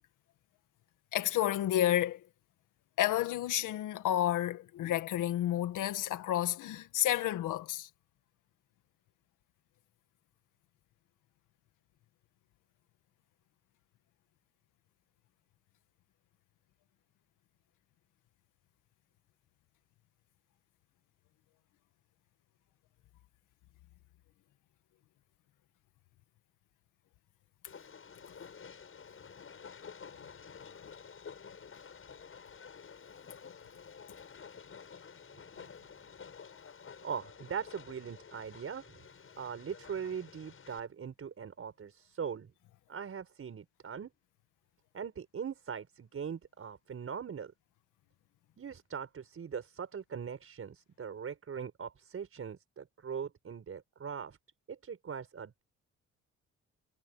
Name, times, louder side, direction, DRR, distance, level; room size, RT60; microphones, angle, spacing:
voice 1, 1.1-2.2 3.0-7.9, left 12 dB, 85° left, 2.0 m, -30 dB
Train, 27.7-40.8, left 6 dB, 45° left, 7.5 m, -51 dB
voice 2, 37.0-39.0 39.4-42.5 42.9-44.1 44.9-47.5 48.6-54.4 54.7-55.6, right 7 dB, 45° right, 5.7 m, -41 dB
cardioid pair, 90°, 30 cm